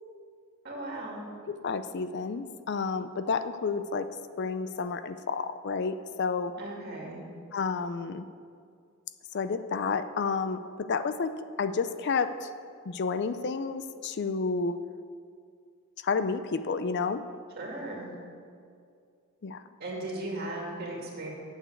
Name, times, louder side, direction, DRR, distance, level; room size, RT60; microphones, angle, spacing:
voice 1, 0.6-1.2 6.6-7.2 17.6-18.1 19.8-21.3, right 2 dB, 50° right, -2 dB, 2.4 m, -37 dB
voice 2, 1.5-4.1 4.4-6.5 7.5-8.3 9.3-11.3 11.6-12.5 12.9-14.8 16.0-17.2 19.4-19.6, left 5 dB, 50° left, 11 dB, 0.4 m, -30 dB
8.8 x 7.3 x 8.1 m, 2.3 s
head